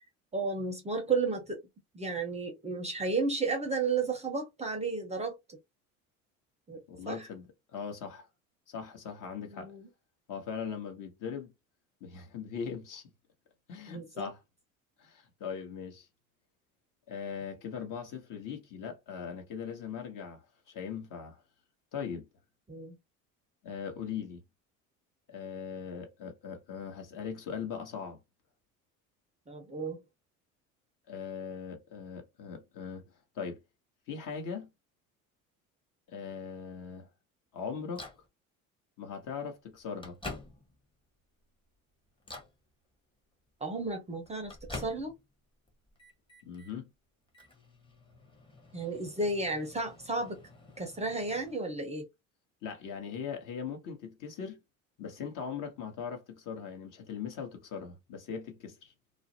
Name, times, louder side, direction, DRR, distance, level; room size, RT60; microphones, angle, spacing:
voice 1, 0.3-1.6 1.9-5.3 6.7-7.3 9.5-9.8 13.9-14.3 22.7-23.0 29.5-30.0 43.6-45.1 48.7-50.4 50.8-52.1, right 3 dB, 15° right, 0.6 m, -33 dB
voice 2, 6.9-8.3 8.7-9.7 10.3-11.5 12.0-13.1 13.7-14.4 15.0-16.1 17.1-21.4 21.9-22.2 23.6-24.4 25.3-28.2 31.1-33.6 34.1-34.7 36.1-37.1 37.5-38.0 39.0-40.2 46.4-46.8 52.6-54.6 55.0-58.9, left 6 dB, 50° left, 1.0 m, -40 dB
Microwave oven, 38.0-38.3 39.2-39.3 39.8-40.9 41.4-41.8 42.2-42.6 43.8-45.3 45.7-46.7 47.3-51.5, left 2 dB, 10° left, 0.8 m, -47 dB
2.4 x 2.0 x 2.7 m
hypercardioid pair, 70°, 42 cm